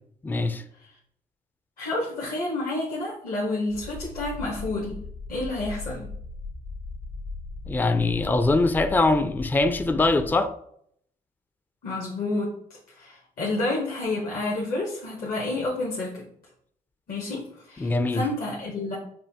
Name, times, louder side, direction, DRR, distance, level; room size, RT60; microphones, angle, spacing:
voice 1, 0.2-0.6 7.7-10.5 17.8-18.3, left 2 dB, 10° left, 0.4 m, -22 dB
voice 2, 1.8-5.0 5.3-6.1 11.8-16.2 17.1-19.0, left 2 dB, 60° left, 1.1 m, -30 dB
sound 1, 3.7-10.3, left 3 dB, 90° left, 1.0 m, -38 dB
5.4 x 2.2 x 2.7 m
supercardioid pair, 50°, 17 cm